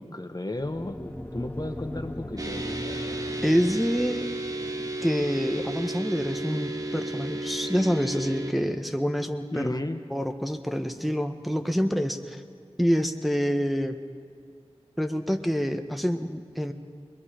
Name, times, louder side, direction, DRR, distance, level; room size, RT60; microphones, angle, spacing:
voice 1, 0.0-3.2 9.5-10.0, left 1 dB, 35° left, 7 dB, 1.1 m, -34 dB
sound 1, 0.6-8.8, left 1 dB, 15° left, 1.6 m, -41 dB
sound 2, 2.4-8.5, right 2 dB, 30° right, 1.6 m, -33 dB
voice 2, 3.4-4.3 5.0-9.8 10.1-12.4 12.8-14.0 15.0-16.7, equal, ahead, 5 dB, 1.1 m, -27 dB
24.0 x 21.5 x 5.1 m, 2.3 s
wide cardioid pair, 40°, 11 cm